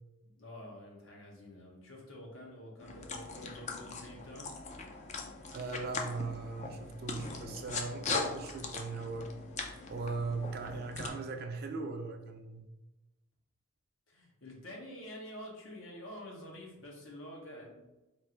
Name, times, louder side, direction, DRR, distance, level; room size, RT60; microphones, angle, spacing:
voice 1, 0.3-4.5 14.1-17.9, left 1 dB, 75° left, 1.0 m, -48 dB
sound 1, 2.8-11.1, left 4 dB, 35° left, 0.4 m, -40 dB
voice 2, 5.5-9.3 9.9-12.7, right 4 dB, 50° right, 0.4 m, -39 dB
3.3 x 2.5 x 4.3 m
head